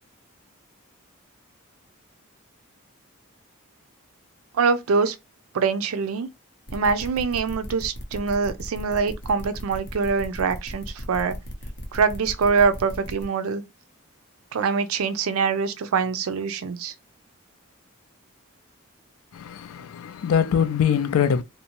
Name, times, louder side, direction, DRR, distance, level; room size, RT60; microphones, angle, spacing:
voice 1, 4.5-5.2 5.5-6.3 6.7-11.4 11.9-13.6 14.5-16.9, right 5 dB, 85° right, 0.4 m, -24 dB
sound 1, 6.7-13.2, equal, 50° left, 0.7 m, -37 dB
voice 2, 19.3-21.4, left 8 dB, 80° left, 0.4 m, -23 dB
2.6 x 2.1 x 2.9 m
head